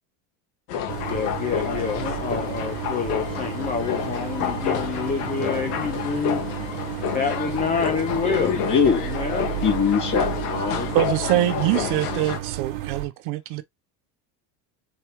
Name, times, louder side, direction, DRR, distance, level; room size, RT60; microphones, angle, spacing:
sound 1, 0.7-12.4, left 9 dB, 75° left, 1.2 m, -29 dB
sound 2, 0.9-13.1, right 13 dB, 45° right, 1.1 m, -32 dB
voice 1, 1.0-6.4 7.1-8.5 9.1-9.5, left 5 dB, 20° left, 0.5 m, -27 dB
voice 2, 8.2-9.0 9.6-11.0, left 6 dB, 40° left, 2.6 m, -23 dB
voice 3, 10.9-13.6, right 17 dB, 60° right, 0.7 m, -24 dB
4.5 x 3.4 x 2.9 m
supercardioid pair, 130°, 46 cm